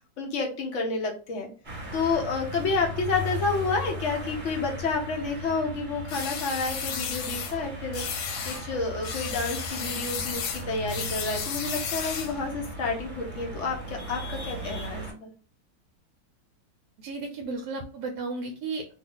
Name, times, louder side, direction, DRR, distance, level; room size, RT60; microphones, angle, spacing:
voice 1, 0.2-1.5 1.9-15.3, left 4 dB, 60° left, 1 dB, 0.8 m, -30 dB
sound 1, 1.6-15.1, equal, 30° right, 1.1 m, -37 dB
sound 2, 6.1-7.5 7.9-8.6 9.0-12.4, left 7 dB, 80° left, 1.3 m, -33 dB
voice 2, 17.0-18.9, right 3 dB, 70° right, 3 dB, 1.0 m, -34 dB
2.9 x 2.1 x 3.7 m, 0.35 s
omnidirectional pair, 1.9 m